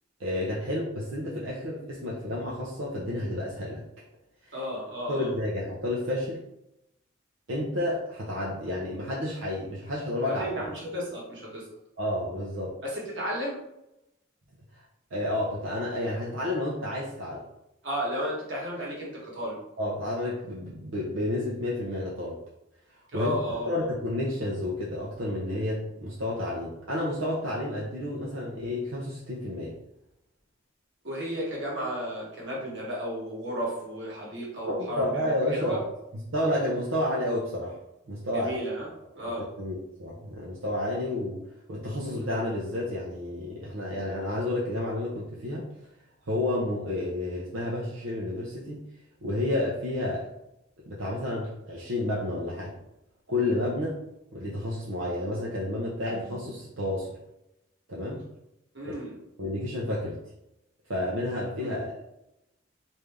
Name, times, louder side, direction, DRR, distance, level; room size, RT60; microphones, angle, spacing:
voice 1, 0.2-3.8 4.5-4.6 5.1-6.4 7.5-10.5 12.0-12.8 15.1-17.4 19.8-22.4 23.1-29.8 34.6-35.8 36.3-37.8 38.1-38.6 39.6-41.4 41.7-45.7 46.3-48.9 49.2-50.3 50.9-52.8 53.3-54.0 54.3-57.2 57.9-58.3 59.4-60.2 60.9-62.0, left 1 dB, 80° right, -5 dB, 0.7 m, -30 dB
voice 2, 4.5-5.3 10.3-11.7 12.8-13.6 17.8-19.6 23.1-23.9 31.0-35.2 35.5-35.8 38.3-38.9 39.1-39.5 58.7-59.2 61.6-61.9, equal, 60° right, -3 dB, 1.3 m, -33 dB
3.3 x 2.7 x 3.5 m, 0.87 s
head